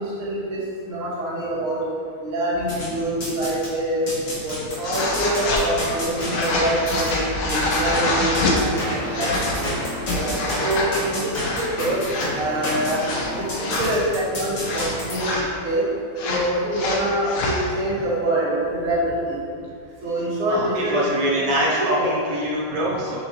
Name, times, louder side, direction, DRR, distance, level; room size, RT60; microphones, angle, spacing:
voice 1, 0.0-1.9 2.2-4.0 4.4-9.7 10.2-12.0 12.3-15.3 15.6-15.9 16.2-19.4 20.0-21.3 21.8-22.1, right 1 dB, 80° right, -8 dB, 2.6 m, -25 dB
sound 1, 2.7-3.7 4.1-15.2, equal, 45° left, 1.8 m, -29 dB
sound 2, 4.8-5.6 6.2-8.6 9.0-9.6 10.0-10.9 11.3-11.7 12.0-12.3 12.9-13.9 14.6-15.5 16.2-17.6, left 2 dB, 65° left, 1.4 m, -25 dB
voice 2, 20.5-23.2, right 1 dB, 30° right, -6 dB, 0.9 m, -24 dB
6.8 x 5.7 x 3.1 m, 2.3 s
omnidirectional pair, 2.4 m